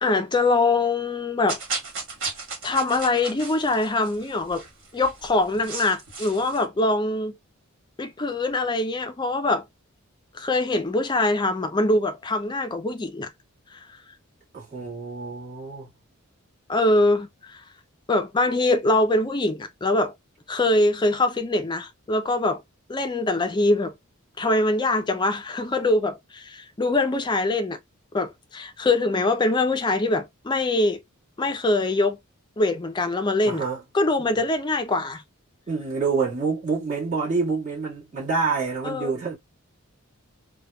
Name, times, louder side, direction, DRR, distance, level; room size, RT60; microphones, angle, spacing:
voice 1, 0.0-1.6 2.6-4.6 4.9-7.3 8.0-9.6 10.3-13.3 13.7-13.8 16.7-17.6 18.1-20.1 20.5-22.6 22.9-23.9 24.4-27.8 28.1-31.0 31.4-32.2 32.6-33.6 33.9-35.2 38.8-39.2, left 2 dB, 20° left, 0.4 m, -23 dB
sound 1, 1.5-6.6, right 4 dB, 60° right, 1.5 m, -35 dB
voice 2, 14.5-15.9 33.4-33.8 34.2-34.4 35.7-39.4, right 4 dB, 35° right, 1.5 m, -27 dB
3.3 x 2.2 x 2.2 m
head